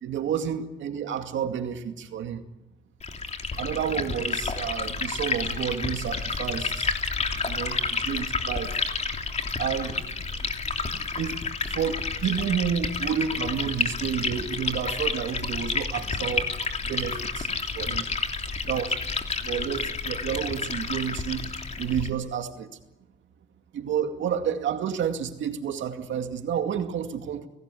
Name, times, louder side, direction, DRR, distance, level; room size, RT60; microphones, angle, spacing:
voice 1, 0.0-2.4 3.6-6.9 7.4-8.8 9.6-10.2 11.0-16.5 16.8-17.5 17.7-18.1 18.6-18.9 19.4-21.5 21.8-22.7 23.7-27.5, right 8 dB, 70° right, 6 dB, 2.3 m, -30 dB
Liquid, 3.0-22.1, left 4 dB, 35° left, 3.2 m, -30 dB
30.0 x 19.0 x 8.5 m, 1.0 s
cardioid pair, 90°, 20 cm